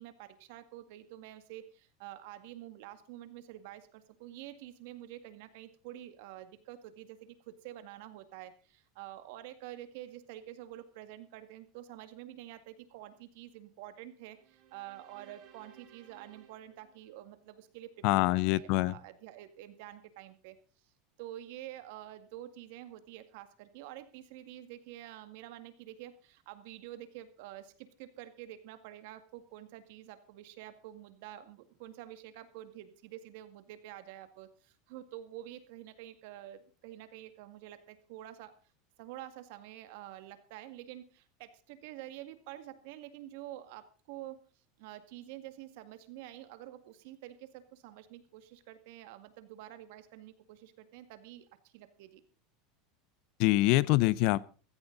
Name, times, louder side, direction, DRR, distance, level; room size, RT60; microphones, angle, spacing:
voice 1, 0.0-20.6 21.2-38.6 39.0-44.4 44.8-52.2, right 13 dB, 70° right, 10 dB, 2.0 m, -48 dB
sound 1, 14.3-17.7, right 9 dB, 45° right, 3.8 m, -60 dB
voice 2, 18.0-18.9 53.4-54.4, left 19 dB, 60° left, 22 dB, 0.6 m, -25 dB
15.5 x 14.5 x 4.0 m, 0.36 s
supercardioid pair, 140°, 0 cm